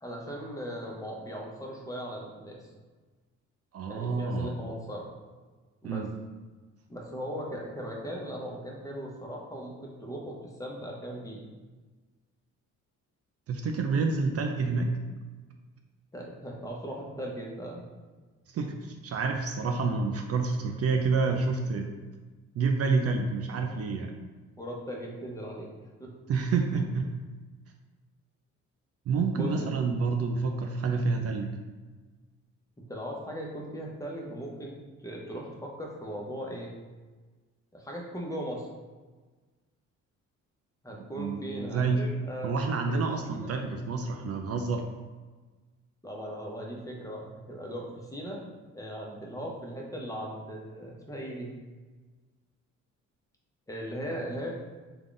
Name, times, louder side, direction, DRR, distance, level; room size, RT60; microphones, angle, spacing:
voice 1, 0.0-2.7 3.9-5.1 5.8-6.0 6.9-11.4 16.1-17.8 24.6-25.7 26.0-26.1 29.3-29.7 32.8-34.7 35.0-36.7 37.7-38.7 40.8-42.5 42.9-43.5 46.0-48.4 48.7-51.5 53.7-54.6, equal, 10° left, -2 dB, 0.8 m, -38 dB
voice 2, 3.7-4.5 5.8-6.1 13.5-15.0 18.5-21.9 22.5-24.2 26.3-27.1 29.1-31.5 41.2-42.0 42.4-44.9, right 4 dB, 55° right, 4 dB, 0.5 m, -28 dB
3.6 x 2.3 x 3.8 m, 1.3 s
cardioid pair, 90°, 30 cm